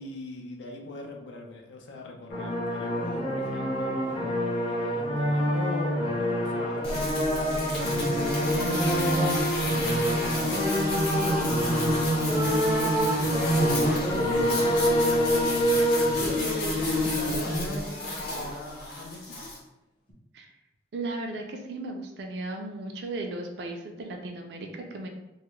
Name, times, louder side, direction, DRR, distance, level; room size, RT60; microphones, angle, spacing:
voice 1, 0.0-7.9 8.4-19.5, left 2 dB, 90° left, 2 dB, 0.5 m, -40 dB
sound 1, 2.3-17.5 17.9-18.0 18.3-18.5 20.1-20.2, equal, 30° left, 0.5 m, -27 dB
sound 2, 6.8-19.6, equal, 55° left, 0.8 m, -28 dB
voice 2, 20.9-25.1, right 2 dB, 65° right, 3 dB, 0.3 m, -36 dB
2.3 x 2.0 x 3.0 m, 0.96 s
head